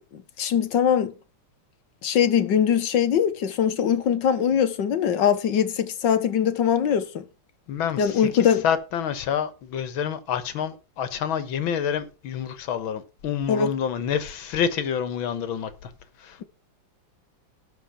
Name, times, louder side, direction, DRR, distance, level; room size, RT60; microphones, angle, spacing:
voice 1, 0.4-1.1 2.0-7.2 8.0-8.6 13.5-13.7, left 8 dB, 70° left, 1.8 m, -22 dB
voice 2, 7.7-15.9 16.2-16.4, left 8 dB, 85° left, 2.0 m, -28 dB
12.0 x 4.6 x 7.2 m
omnidirectional pair, 2.1 m